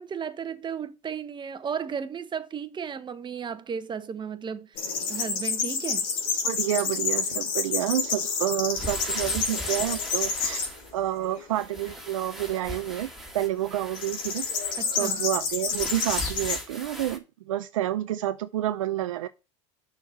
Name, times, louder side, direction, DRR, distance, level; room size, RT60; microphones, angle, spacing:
voice 1, 0.0-6.1 14.8-15.2, right 7 dB, 30° right, 1.0 m, -34 dB
sound 1, 4.8-10.7 11.2-11.8 13.9-16.6, left 5 dB, 60° left, 3.0 m, -29 dB
voice 2, 6.4-10.7 10.9-13.1 13.3-14.5 14.9-19.3, right 13 dB, 90° right, 0.6 m, -29 dB
sound 2, 8.8-11.2 11.5-14.8 15.7-17.2, equal, ahead, 2.2 m, -38 dB
6.5 x 5.1 x 7.0 m
hypercardioid pair, 90°, 16 cm